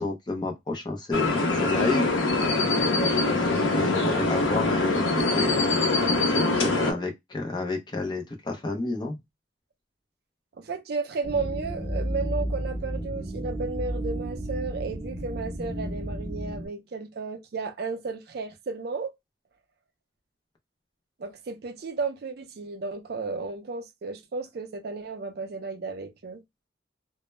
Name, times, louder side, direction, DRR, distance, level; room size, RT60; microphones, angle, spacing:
voice 1, 0.0-2.1 2.4-5.6 6.3-9.2, left 2 dB, 25° left, 0.5 m, -31 dB
sound 1, 1.1-6.9, left 2 dB, 85° left, 0.7 m, -24 dB
voice 2, 10.6-19.1 21.2-26.4, right 4 dB, 55° right, 0.4 m, -33 dB
sound 2, 11.2-16.7, right 1 dB, 10° right, 0.7 m, -32 dB
2.1 x 2.0 x 3.0 m
head